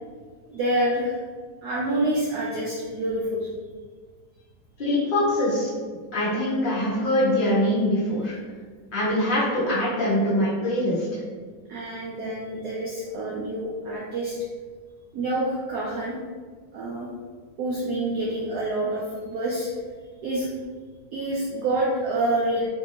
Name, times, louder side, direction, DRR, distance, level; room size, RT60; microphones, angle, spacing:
voice 1, 0.5-1.2 1.6-3.5 11.7-14.3 15.1-16.2 16.7-17.1 17.6-19.7 20.2-20.5 21.1-22.7, right 1 dB, 85° right, -5 dB, 0.8 m, -27 dB
voice 2, 4.8-5.7 6.1-8.3 8.9-11.1, left 1 dB, 55° left, -9 dB, 0.5 m, -23 dB
3.3 x 2.6 x 2.7 m, 1.5 s
omnidirectional pair, 2.2 m